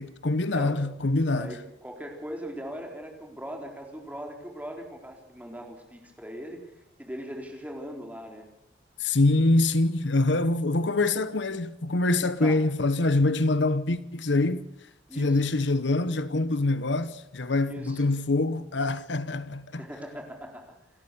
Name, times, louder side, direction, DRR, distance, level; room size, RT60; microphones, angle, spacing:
voice 1, 0.0-1.5 9.0-14.6 15.2-19.8, left 2 dB, 75° left, 1.0 m, -25 dB
voice 2, 0.5-0.8 1.3-8.5 12.4-12.6 15.1-15.4 17.6-18.0 19.7-20.8, equal, 10° right, 4.1 m, -40 dB
28.5 x 13.5 x 6.9 m
head